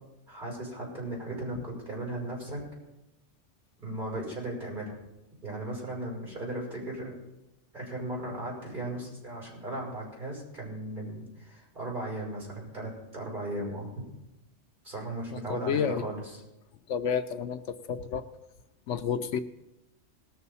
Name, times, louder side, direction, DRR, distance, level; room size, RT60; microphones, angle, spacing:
voice 1, 0.3-2.6 3.8-5.0 5.4-7.2 7.7-14.0 14.8-16.4, right 1 dB, 40° right, -3 dB, 6.0 m, -36 dB
voice 2, 15.5-16.0 16.9-17.6 17.9-18.2 18.9-19.4, left 7 dB, 75° left, 9 dB, 0.9 m, -29 dB
19.0 x 7.0 x 5.5 m, 0.95 s
omnidirectional pair, 1.3 m